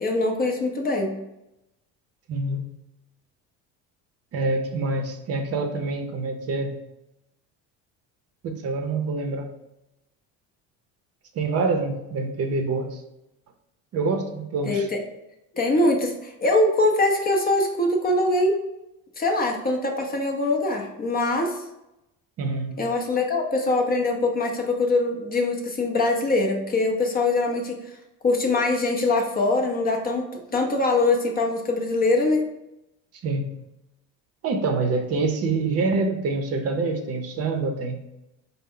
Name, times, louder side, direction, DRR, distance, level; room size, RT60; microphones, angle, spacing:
voice 1, 0.0-1.1 14.7-15.0 15.5-18.6 19.2-21.6 22.8-27.8 28.2-32.4, left 2 dB, 25° left, 2 dB, 0.5 m, -23 dB
voice 2, 2.3-2.7 4.3-6.8 8.4-9.5 11.3-13.0 13.9-14.9 22.4-22.8 33.2-33.6 34.4-38.0, right 3 dB, 45° right, 5 dB, 0.6 m, -26 dB
4.2 x 2.0 x 3.7 m, 0.90 s
cardioid pair, 125°, 34 cm